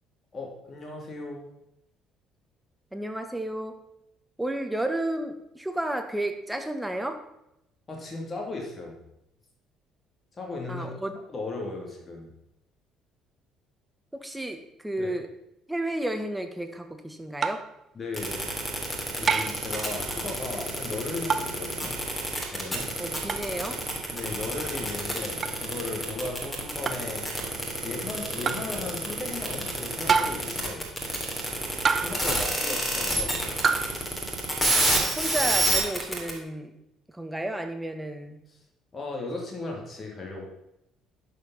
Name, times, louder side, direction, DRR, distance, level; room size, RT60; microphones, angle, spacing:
voice 1, 0.3-1.5 7.9-9.0 10.3-10.9 11.3-12.3 15.0-15.2 17.9-18.5 19.1-22.0 22.5-23.0 24.1-27.2 27.5-30.9 32.0-33.6 38.9-40.5, left 2 dB, 30° left, 0 dB, 2.7 m, -36 dB
voice 2, 2.9-3.7 4.4-7.2 10.7-11.1 14.1-15.3 15.7-17.6 23.0-23.8 34.9-36.7 37.1-38.4, right 1 dB, 10° right, 6 dB, 1.5 m, -32 dB
sound 1, 17.4-17.7 19.3-19.7 21.3-21.6 23.3-23.5 25.4-25.6 26.9-27.1 28.4-28.7 30.1-30.5 31.8-32.3 33.6-33.9, right 5 dB, 40° right, 0.7 m, -26 dB
sound 2, 18.1-36.3, right 1 dB, 15° left, 3.3 m, -28 dB
11.0 x 5.3 x 5.5 m, 0.82 s
figure-of-eight pair, 50°, 0 cm